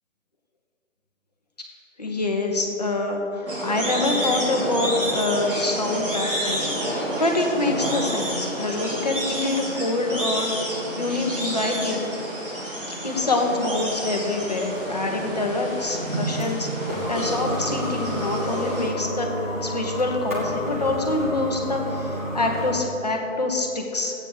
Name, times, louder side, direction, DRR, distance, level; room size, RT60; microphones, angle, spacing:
voice 1, 2.0-12.1 13.0-19.3 19.6-24.1, left 2 dB, 30° left, 1 dB, 1.1 m, -26 dB
sound 1, 3.5-18.9, right 1 dB, 45° right, 2.7 m, -29 dB
sound 2, 13.8-22.9, equal, 10° right, 0.9 m, -32 dB
13.0 x 8.8 x 4.8 m, 2.8 s
figure-of-eight pair, 170°, 39 cm